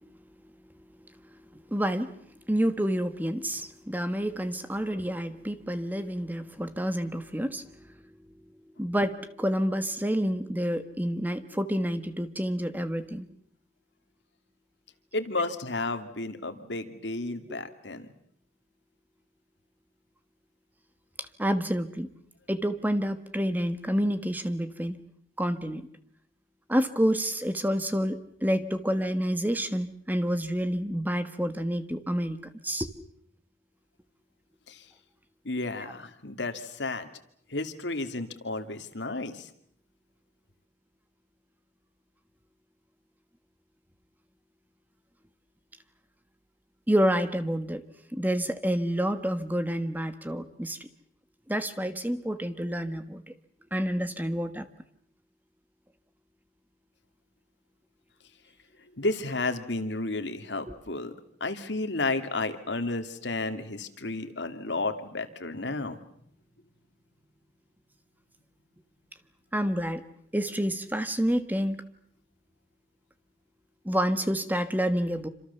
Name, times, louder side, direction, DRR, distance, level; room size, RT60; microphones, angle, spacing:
voice 1, 1.5-2.2 2.5-8.4 8.8-13.3 17.5-17.6 21.2-22.1 22.5-25.0 25.4-25.9 26.7-32.4 32.6-32.9 46.9-47.8 48.1-50.9 51.5-53.2 53.7-54.7 60.7-60.8 69.5-70.0 70.3-71.8 73.8-75.3, equal, 10° right, 10 dB, 1.4 m, -28 dB
voice 2, 15.1-18.1 34.7-34.9 35.4-37.1 37.5-39.5 59.0-61.1 61.4-66.0, left 2 dB, 80° left, 8 dB, 2.5 m, -32 dB
27.5 x 26.5 x 7.1 m, 0.69 s
head